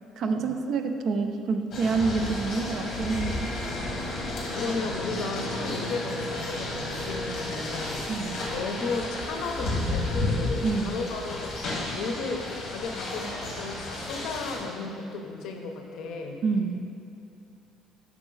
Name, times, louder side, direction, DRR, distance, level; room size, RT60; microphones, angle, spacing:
voice 1, 0.2-3.5 8.1-8.5 10.6-11.0 16.4-16.9, right 4 dB, 50° right, 6 dB, 0.4 m, -27 dB
sound 1, 1.7-14.6, left 2 dB, 40° left, 1.3 m, -32 dB
voice 2, 3.7-8.0 8.5-11.5 11.9-16.4, left 3 dB, 65° left, 3 dB, 0.6 m, -34 dB
6.0 x 4.9 x 3.8 m, 2.6 s
cardioid pair, 160°, 0 cm